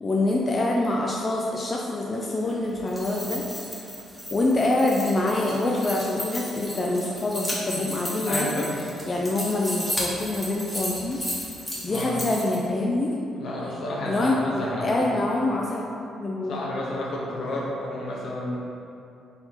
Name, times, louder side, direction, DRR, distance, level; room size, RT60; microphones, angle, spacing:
voice 1, 0.0-3.5 4.3-8.7 9.1-11.2 11.8-13.1 14.1-16.5, left 2 dB, 30° left, -2 dB, 0.4 m, -25 dB
sound 1, 2.8-12.6, equal, 10° left, 1.2 m, -34 dB
voice 2, 8.3-8.7 11.9-12.2 13.3-15.1 16.5-18.6, left 1 dB, 70° left, -5 dB, 1.0 m, -31 dB
4.1 x 2.9 x 4.0 m, 2.6 s
cardioid pair, 90°, 0 cm